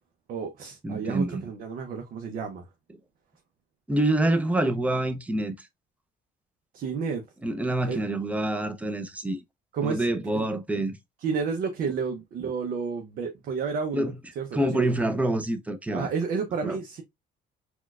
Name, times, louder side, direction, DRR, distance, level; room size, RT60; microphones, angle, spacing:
voice 1, 0.3-2.7 6.7-7.2 7.9-8.0 9.7-10.5 11.2-14.8 15.9-17.0, right 5 dB, 60° right, 0.6 m, -31 dB
voice 2, 0.8-1.5 3.9-5.5 7.4-9.4 9.8-11.0 13.9-14.1 14.5-16.1 16.6-16.8, right 1 dB, 10° right, 0.5 m, -26 dB
4.3 x 2.2 x 2.3 m
cardioid pair, 110°, 17 cm